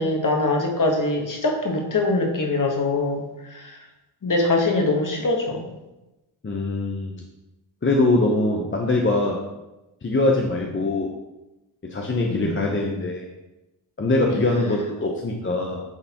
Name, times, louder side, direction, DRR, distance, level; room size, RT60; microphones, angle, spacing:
voice 1, 0.0-3.8 4.2-5.7 10.5-10.7 12.3-12.6, left 2 dB, 40° left, 2 dB, 1.4 m, -23 dB
voice 2, 6.4-7.1 7.8-9.4 10.0-11.1 11.9-13.3 14.0-15.8, left 2 dB, 25° left, 0 dB, 0.9 m, -22 dB
8.9 x 3.9 x 3.0 m, 1.0 s
cardioid pair, 55°, 48 cm